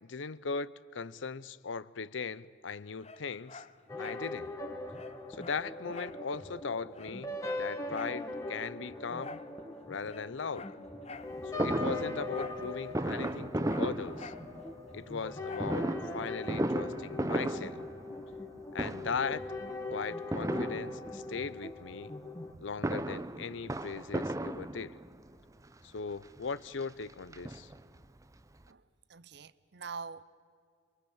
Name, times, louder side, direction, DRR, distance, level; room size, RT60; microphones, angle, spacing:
voice 1, 0.0-3.6 4.0-4.5 5.3-7.3 7.6-9.4 9.9-10.8 11.5-14.3 14.9-15.9 16.1-17.8 18.7-19.5 19.9-22.1 22.6-25.0 25.8-27.7, left 5 dB, 75° left, 0.6 m, -38 dB
Dog, 3.0-4.3 4.6-4.7 4.9-6.2 6.6-6.7 6.9-8.2 9.2-9.5 10.0-11.3 12.3-12.7 12.9-14.5 15.4-15.8 16.3-16.4, left 4 dB, 35° left, 0.8 m, -48 dB
sound 1, 3.9-22.5, left 2 dB, 15° left, 1.8 m, -41 dB
Fireworks, 11.6-14.8 15.6-18.5 18.7-19.4 20.3-21.4 22.5-25.2 26.0-26.1 26.4-26.5 26.8-28.0 28.4-28.5 28.6-28.7, right 1 dB, 15° right, 0.6 m, -35 dB
voice 2, 29.1-30.2, right 5 dB, 60° right, 0.7 m, -44 dB
27.5 x 23.0 x 7.3 m
head